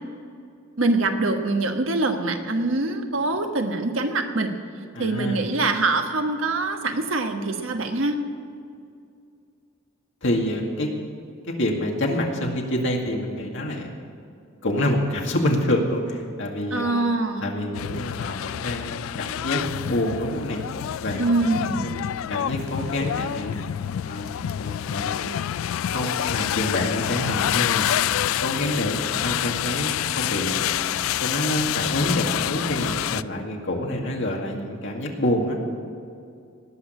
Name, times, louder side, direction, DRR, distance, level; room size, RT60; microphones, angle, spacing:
voice 1, 0.8-4.5 5.0-8.2 16.7-17.5 21.2-21.9, right 2 dB, 75° right, 5 dB, 1.3 m, -24 dB
voice 2, 4.9-5.4 10.2-10.9 11.4-13.9 14.6-17.1 17.4-20.6 21.0-21.3 21.6-23.6 24.0-25.3 25.9-27.9 28.4-30.7 31.2-35.6, left 1 dB, 65° left, 0 dB, 2.2 m, -27 dB
sound 1, 17.7-33.2, left 11 dB, 90° left, 0.3 m, -27 dB
19.0 x 6.3 x 9.6 m, 2.4 s
head